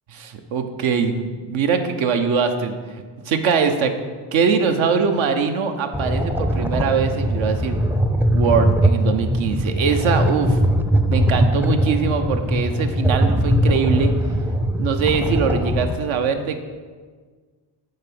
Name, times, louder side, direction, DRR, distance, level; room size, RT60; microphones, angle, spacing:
voice 1, 0.2-3.9 4.3-7.8 8.3-10.6 11.1-14.1 14.8-16.6, right 6 dB, 70° right, 7 dB, 0.9 m, -22 dB
sound 1, 5.9-16.0, equal, 5° right, 0.4 m, -20 dB
6.5 x 3.9 x 5.9 m, 1.5 s
supercardioid pair, 55°, 48 cm